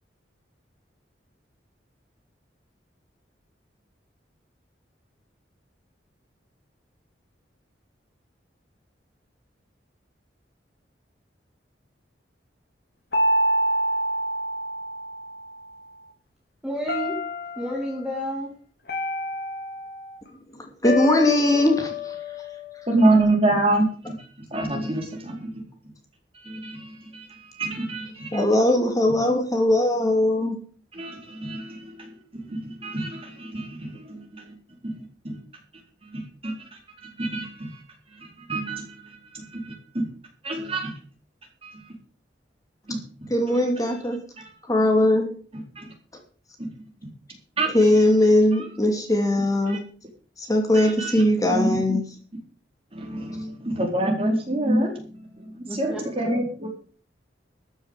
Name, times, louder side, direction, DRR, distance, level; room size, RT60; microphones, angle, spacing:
sound 1, 13.1-15.5 16.9-17.9 18.9-20.2 20.8-23.2, left 1 dB, 60° left, 4.1 m, -27 dB
voice 1, 16.6-17.2 17.6-18.5 21.5-21.7 55.7-56.3, equal, 5° right, -2 dB, 2.6 m, -31 dB
voice 2, 20.8-21.9 28.3-30.6 43.3-44.2 44.7-45.3 47.7-49.8 50.4-52.0, left 1 dB, 20° left, 3 dB, 2.6 m, -20 dB
voice 3, 22.9-24.2 24.5-25.5 26.3-28.4 30.9-34.5 34.8-35.4 36.0-37.8 38.5-40.1 40.4-41.0 42.9-43.6 44.4-44.5 45.5-45.9 46.6-46.7 47.6-47.7 49.7-49.8 50.7-51.2 51.5-52.0 52.9-55.0 55.4-56.7, right 2 dB, 30° right, 1 dB, 4.4 m, -27 dB
13.5 x 7.2 x 8.2 m, 0.43 s
head